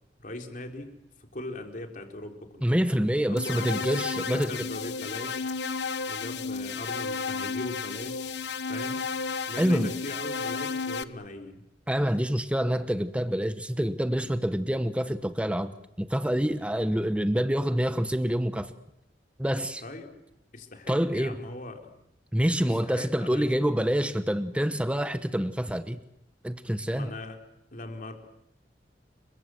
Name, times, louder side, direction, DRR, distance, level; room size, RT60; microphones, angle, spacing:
voice 1, 0.2-0.9 1.2-2.7 3.3-5.6 6.1-8.3 8.7-9.0 9.5-11.6 19.8-20.1 20.5-21.9 22.6-23.5 26.9-27.4 27.7-28.1, left 2 dB, 50° left, 4.0 m, -40 dB
voice 2, 2.6-4.5 9.6-9.9 11.9-15.7 16.0-18.7 19.4-19.8 20.9-21.4 22.3-26.0 26.4-27.1, equal, 5° right, 1.1 m, -26 dB
sound 1, 3.4-11.0, left 4 dB, 70° left, 1.1 m, -32 dB
30.0 x 23.5 x 7.9 m
head